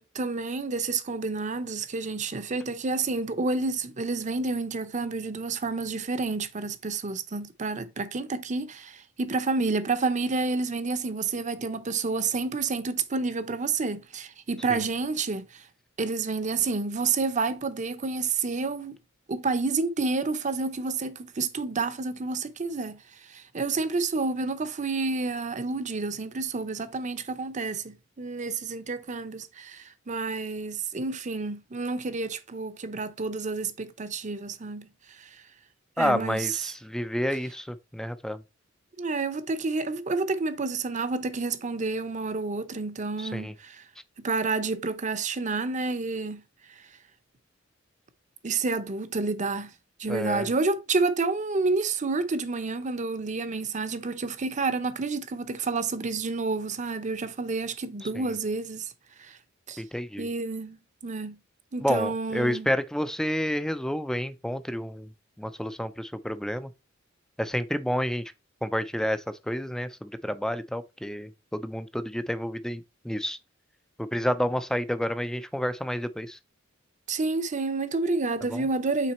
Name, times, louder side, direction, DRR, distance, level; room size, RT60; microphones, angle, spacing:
voice 1, 0.0-15.6 16.0-19.0 19.3-23.0 23.3-35.3 36.0-36.6 39.0-43.8 44.2-46.4 48.4-49.7 50.0-58.9 59.2-59.4 59.7-59.8 60.2-61.4 61.7-62.7 77.1-79.1, right 3 dB, 35° right, 0.7 m, -29 dB
voice 2, 36.0-38.4 43.2-43.5 50.1-50.5 58.1-58.2 59.8-60.3 61.8-65.1 65.4-66.7 67.4-68.2 68.6-73.4 74.0-76.4 78.5-78.7, equal, 5° left, 0.4 m, -29 dB
5.9 x 4.0 x 4.1 m
head